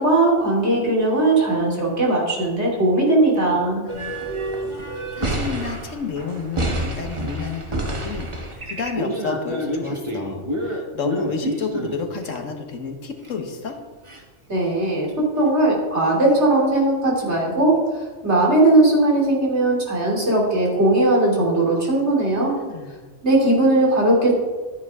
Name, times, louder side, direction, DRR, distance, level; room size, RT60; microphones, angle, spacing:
voice 1, 0.0-3.8 14.5-17.8 18.2-22.5 23.2-24.3, right 2 dB, 60° right, -3 dB, 3.4 m, -18 dB
voice 2, 3.8-4.1 5.1-8.3 8.7-13.8 22.4-23.1, left 5 dB, 90° left, 5 dB, 1.6 m, -31 dB
sound 1, 3.9-12.4 13.2-13.3 13.7-13.8 14.1-14.2 14.7-14.8 16.3-16.4, right 1 dB, 25° right, 1.2 m, -28 dB
13.5 x 9.3 x 3.6 m, 1.4 s
omnidirectional pair, 1.3 m